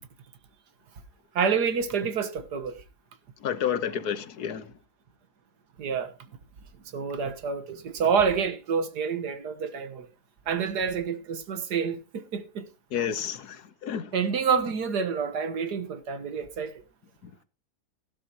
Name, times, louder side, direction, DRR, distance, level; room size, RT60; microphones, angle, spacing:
voice 1, 1.4-2.8 5.8-6.1 6.9-10.1 10.5-12.7 14.1-16.7, right 6 dB, 75° right, 1.8 m, -28 dB
voice 2, 3.4-4.7 12.9-14.1, left 8 dB, 70° left, 1.5 m, -30 dB
16.5 x 12.0 x 2.9 m
omnidirectional pair, 1.8 m